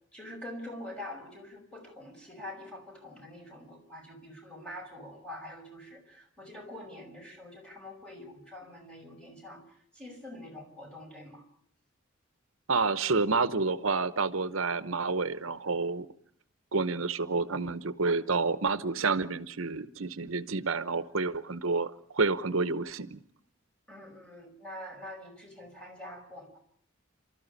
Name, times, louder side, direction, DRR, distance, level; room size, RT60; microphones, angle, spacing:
voice 1, 0.1-11.4 23.9-26.6, left 1 dB, 5° left, 5.9 m, -45 dB
voice 2, 12.7-16.1 16.7-23.2, right 4 dB, 85° right, 0.9 m, -29 dB
29.0 x 13.5 x 9.8 m
head